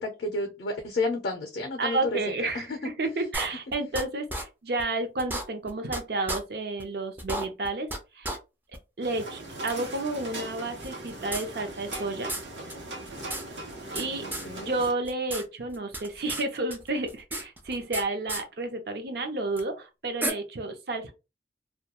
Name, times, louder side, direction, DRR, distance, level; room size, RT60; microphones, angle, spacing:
voice 1, 0.0-2.2 2.5-2.8 14.2-14.7, left 2 dB, 60° left, 0.5 m, -31 dB
voice 2, 1.8-7.9 8.2-8.4 9.0-12.3 13.9-14.2 14.5-21.1, right 2 dB, 60° right, 0.5 m, -31 dB
sound 1, 3.3-4.0 4.3-4.4 4.8-4.9 5.2-6.0 6.3-6.4 6.8-6.9 7.2-8.4 8.7-8.8 9.7-9.8 10.8-12.0 12.3-12.4 12.7-12.8 13.0-14.1 14.3-14.5 14.8-15.4 15.7-16.4 16.7-18.0 18.3-18.4 19.6-19.7 20.2-20.3, right 1 dB, 10° right, 0.4 m, -33 dB
sound 2, 9.0-14.9, right 1 dB, 85° right, 0.8 m, -40 dB
2.2 x 2.2 x 2.8 m
head